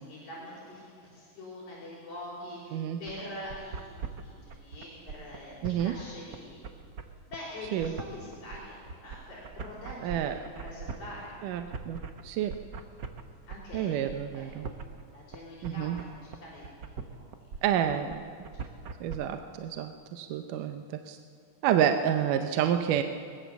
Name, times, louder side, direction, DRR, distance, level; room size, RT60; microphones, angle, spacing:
voice 1, 0.0-6.7 7.3-11.4 13.5-14.0 14.3-14.5 15.1-17.3 18.5-18.7, left 1 dB, 60° left, -7 dB, 6.2 m, -44 dB
sound 1, 3.1-19.2, right 5 dB, 60° right, 1.1 m, -41 dB
voice 2, 5.6-6.0 7.7-7.9 10.0-10.4 11.4-12.5 13.7-14.7 15.6-16.0 17.6-18.2 19.0-21.2 21.6-23.0, right 9 dB, 80° right, 7 dB, 2.4 m, -29 dB
22.5 x 20.0 x 7.1 m, 2.1 s
omnidirectional pair, 3.8 m